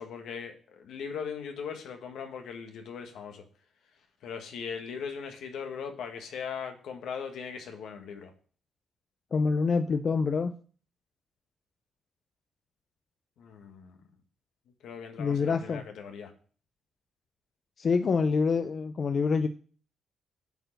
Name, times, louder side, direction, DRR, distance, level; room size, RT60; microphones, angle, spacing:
voice 1, 0.0-3.4 4.2-8.3 13.4-14.0 14.8-16.3, left 6 dB, 75° left, 5 dB, 1.6 m, -39 dB
voice 2, 9.3-10.5 15.2-15.8 17.8-19.5, left 5 dB, 45° left, 9 dB, 0.5 m, -26 dB
8.0 x 4.7 x 6.5 m, 0.43 s
cardioid pair, 90°, 0 cm